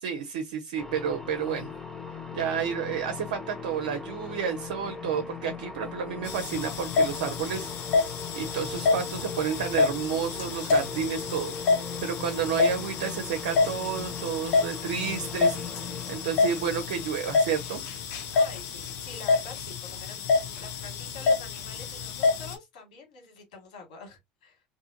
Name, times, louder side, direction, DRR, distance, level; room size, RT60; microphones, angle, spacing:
voice 1, 0.0-1.7 2.3-15.8 16.1-17.8, right 7 dB, 80° right, 0.5 m, -31 dB
sound 1, 0.8-19.1, left 5 dB, 10° left, 0.9 m, -40 dB
sound 2, 6.3-22.5, left 4 dB, 60° left, 0.8 m, -28 dB
voice 2, 18.3-24.6, left 5 dB, 80° left, 1.5 m, -46 dB
2.6 x 2.4 x 2.8 m
hypercardioid pair, 85°, 4 cm